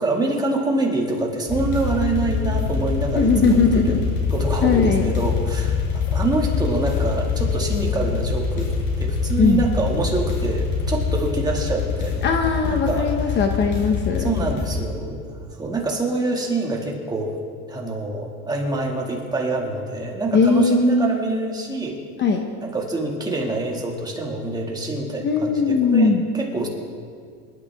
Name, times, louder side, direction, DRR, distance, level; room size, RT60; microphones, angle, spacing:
voice 1, 0.0-4.0 4.3-8.7 9.0-12.3 12.6-13.4 14.2-17.4 17.7-22.0 22.6-26.7, right 2 dB, 10° right, -1 dB, 2.1 m, -26 dB
sound 1, 1.5-14.8, left 5 dB, 60° left, 4.8 m, -24 dB
voice 2, 3.1-4.0 4.6-5.1 9.4-9.6 12.2-14.3 20.3-21.1 22.2-22.4 25.2-26.2, left 4 dB, 30° left, 4 dB, 1.0 m, -19 dB
25.5 x 12.5 x 3.6 m, 2.1 s
cardioid pair, 150°, 34 cm